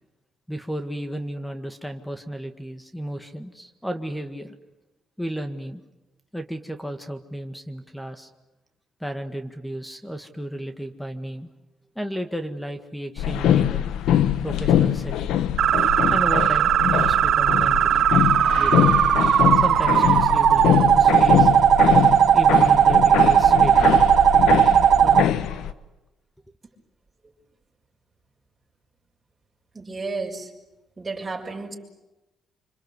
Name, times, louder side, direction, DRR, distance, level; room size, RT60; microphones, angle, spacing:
voice 1, 0.5-4.5 5.2-5.8 6.3-8.3 9.0-11.5 12.0-13.9 14.4-15.3 16.1-18.1 18.6-19.0 19.6-21.5 22.3-24.0 24.5-25.4, equal, 5° left, 8 dB, 1.8 m, -33 dB
sound 1, 13.2-25.7, left 10 dB, 85° left, 1.0 m, -23 dB
sound 2, 15.6-25.2, right 9 dB, 70° right, 0.9 m, -17 dB
voice 2, 29.7-30.5 31.0-31.7, right 3 dB, 20° right, -1 dB, 5.8 m, -32 dB
26.0 x 25.5 x 8.1 m, 1.0 s
cardioid pair, 90°, 0 cm